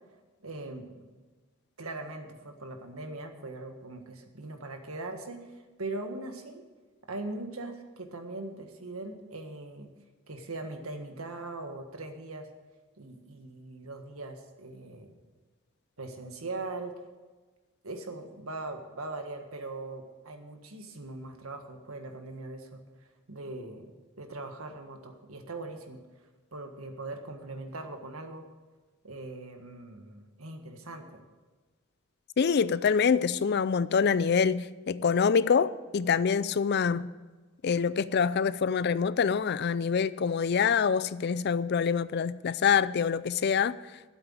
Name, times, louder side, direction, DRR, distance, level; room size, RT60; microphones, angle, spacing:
voice 1, 0.4-1.1 1.8-6.6 7.1-9.9 10.3-12.5 13.0-15.2 16.0-16.9 17.8-22.8 23.3-26.0 26.5-28.5 29.0-31.2, right 2 dB, 80° right, 1.7 m, -40 dB
voice 2, 32.4-37.1 37.6-43.7, left 6 dB, 50° left, 0.4 m, -25 dB
12.5 x 8.1 x 7.8 m
head